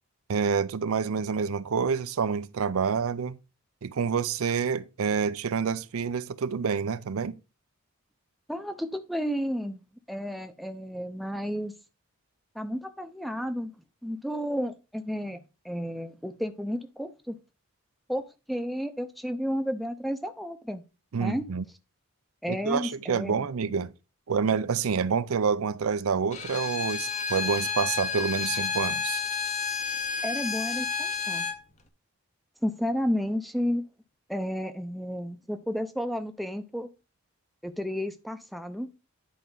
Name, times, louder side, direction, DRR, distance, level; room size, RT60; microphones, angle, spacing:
voice 1, 0.3-3.4 3.8-7.4 21.1-21.6 22.5-23.9 24.3-29.2, right 6 dB, 80° right, 0.5 m, -28 dB
voice 2, 8.5-9.8 10.1-11.7 12.5-13.7 14.0-15.4 15.6-17.3 18.1-18.2 18.5-20.8 21.2-21.4 22.4-23.5 30.2-31.5 32.6-33.8 34.3-36.9 37.6-38.9, equal, ahead, 0.5 m, -32 dB
Bowed string instrument, 26.3-31.6, left 6 dB, 35° left, 0.8 m, -30 dB
10.5 x 4.5 x 3.8 m
head